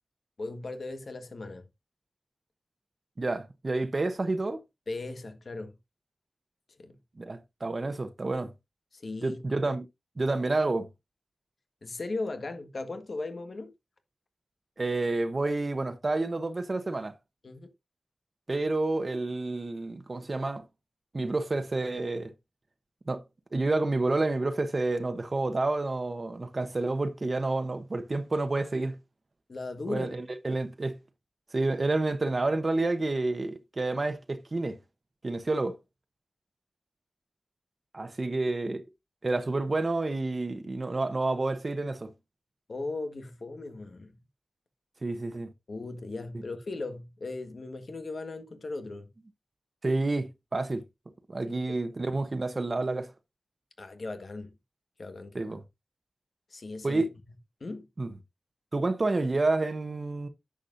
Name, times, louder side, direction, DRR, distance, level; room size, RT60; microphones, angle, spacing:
voice 1, 0.4-1.6 4.9-5.7 6.8-6.9 8.9-9.7 11.8-13.7 17.4-17.7 29.5-30.1 42.7-44.2 45.7-49.1 51.5-51.8 53.8-54.5 55.0-55.5 56.5-57.1 57.6-57.9, left 3 dB, 65° left, 1.5 m, -37 dB
voice 2, 3.2-4.6 7.2-8.5 9.2-9.9 10.2-10.9 14.8-17.1 18.5-20.6 21.1-22.3 23.1-23.2 23.5-29.0 29.9-31.0 31.5-34.8 35.2-35.8 37.9-38.8 39.2-42.1 45.0-45.5 49.8-50.8 51.3-53.1 55.3-55.6 56.8-57.1 58.0-58.1 58.7-60.3, right 2 dB, 45° right, 1.0 m, -29 dB
10.0 x 7.4 x 2.6 m
wide cardioid pair, 100°, 0 cm